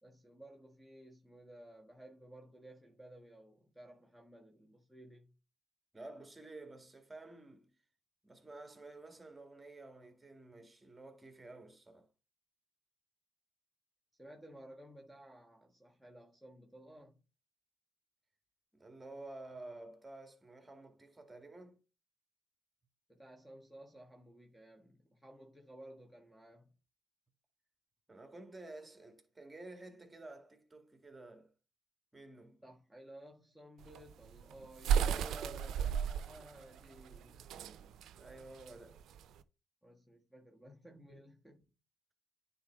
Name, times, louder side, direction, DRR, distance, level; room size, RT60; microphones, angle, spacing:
voice 1, 0.0-5.3 14.2-17.2 23.1-26.8 32.6-37.5 39.8-41.6, right 1 dB, ahead, 1.5 m, -56 dB
voice 2, 5.9-7.7 8.2-12.1 18.7-21.8 28.1-31.5 32.1-32.6 35.0-36.0 38.1-39.0, right 2 dB, 20° right, 2.1 m, -51 dB
sound 1, 33.8-39.4, right 8 dB, 75° right, 0.5 m, -35 dB
9.4 x 4.2 x 3.4 m
supercardioid pair, 55°, 0 cm